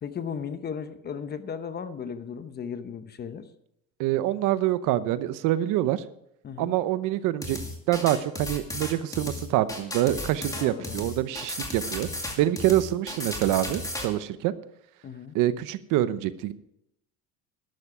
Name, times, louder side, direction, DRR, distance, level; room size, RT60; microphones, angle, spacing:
voice 1, 0.0-3.5 6.4-6.7 10.5-11.0 15.0-15.4, left 7 dB, 30° left, 11 dB, 0.9 m, -36 dB
voice 2, 4.0-6.0 6.6-7.6 7.9-12.1 12.4-14.5 15.3-16.5, right 13 dB, 65° right, 14 dB, 0.9 m, -26 dB
sound 1, 7.4-14.1, left 1 dB, 10° left, 2.2 m, -34 dB
12.5 x 12.0 x 4.9 m, 0.79 s
cardioid pair, 145°, 33 cm